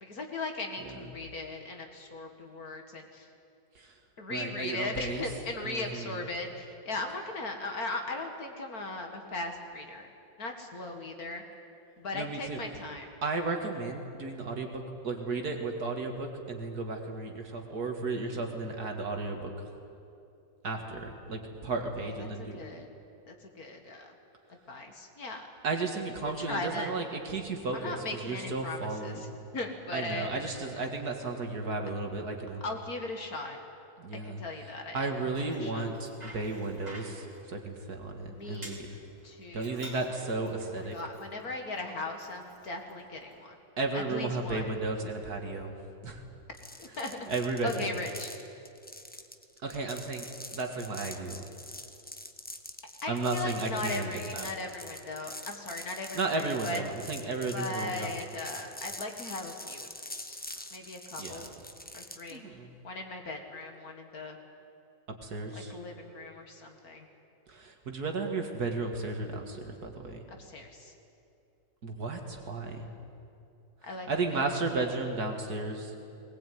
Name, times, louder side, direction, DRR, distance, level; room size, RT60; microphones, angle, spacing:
voice 1, 0.0-3.3 4.2-10.1 10.4-11.4 12.0-13.1 22.0-22.9 23.3-24.1 24.7-25.5 26.2-26.9 27.7-30.4 32.6-33.6 34.1-35.8 38.3-38.8 39.2-39.9 40.8-43.6 43.9-44.6 46.8-47.3 47.6-48.3 53.0-56.8 57.5-60.4 60.7-61.5 61.9-62.5 62.8-64.4 65.5-67.1 70.3-70.9 73.8-74.5, left 2 dB, 50° left, 4 dB, 2.3 m, -38 dB
voice 2, 4.3-5.2 5.6-6.2 12.1-12.6 13.2-19.7 20.6-22.6 25.6-29.4 29.9-32.6 34.0-34.4 34.9-39.0 39.5-41.0 43.8-45.8 46.0-46.2 47.3-47.9 49.6-50.3 50.5-51.5 53.1-54.5 56.1-58.1 61.2-61.5 62.3-62.7 65.1-65.8 67.5-70.2 71.8-72.9 74.1-75.9, right 3 dB, 55° right, 3 dB, 2.4 m, -34 dB
Bicycle, 35.1-43.4, right 1 dB, 20° right, 3.3 m, -52 dB
sound 1, 46.5-62.4, left 1 dB, 10° left, 0.5 m, -45 dB
20.0 x 19.0 x 9.4 m, 2.7 s
omnidirectional pair, 2.1 m